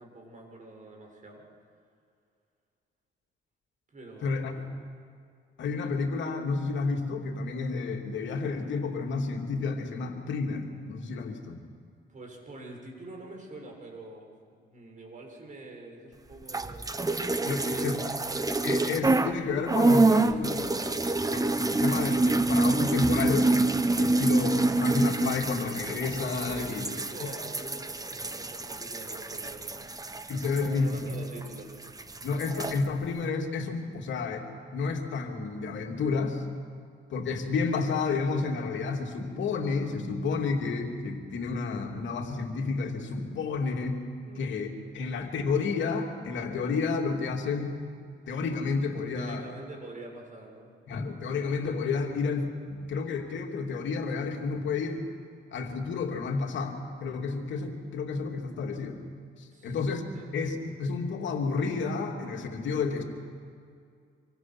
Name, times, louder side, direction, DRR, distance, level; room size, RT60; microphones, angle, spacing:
voice 1, 0.0-1.5 3.9-4.6 12.1-16.9 17.5-18.6 24.1-24.3 26.5-29.8 30.1-31.8 44.2-44.5 45.2-45.4 49.1-50.7 59.5-59.8 60.1-60.3, right 2 dB, 40° right, 1 dB, 6.6 m, -46 dB
voice 2, 4.2-4.5 5.6-11.6 17.4-18.0 18.6-20.8 21.3-23.5 24.0-26.9 27.2-27.3 30.3-31.0 32.2-34.5 34.7-36.4 37.1-44.0 44.4-44.7 44.9-47.8 48.3-49.4 50.9-55.0 55.5-59.0 59.4-63.0, left 4 dB, 70° left, 2 dB, 3.0 m, -31 dB
sound 1, 16.4-19.4 19.7-31.6 31.8-32.8, right 2 dB, 20° right, 1.2 m, -27 dB
26.5 x 25.0 x 6.3 m, 2.3 s
cardioid pair, 90°, 20 cm